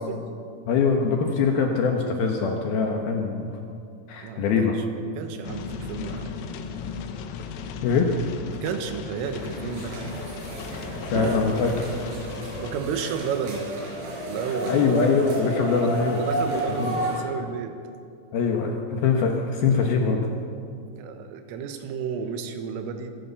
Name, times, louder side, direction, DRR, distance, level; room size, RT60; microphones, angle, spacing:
voice 1, 0.6-3.5 4.1-4.7 7.8-8.2 11.0-12.2 13.0-13.1 14.7-16.2 16.8-17.0 18.3-20.3, left 5 dB, 70° left, 2 dB, 2.5 m, -23 dB
voice 2, 4.2-4.7 5.1-6.4 8.5-10.2 12.6-13.7 14.2-14.8 15.7-17.8 21.0-23.1, right 7 dB, 90° right, 7 dB, 4.0 m, -32 dB
sound 1, 5.4-12.8, left 6 dB, 90° left, 3.9 m, -36 dB
sound 2, 9.2-17.2, right 1 dB, 65° right, 6.8 m, -32 dB
25.0 x 15.0 x 6.9 m, 2.4 s
omnidirectional pair, 5.7 m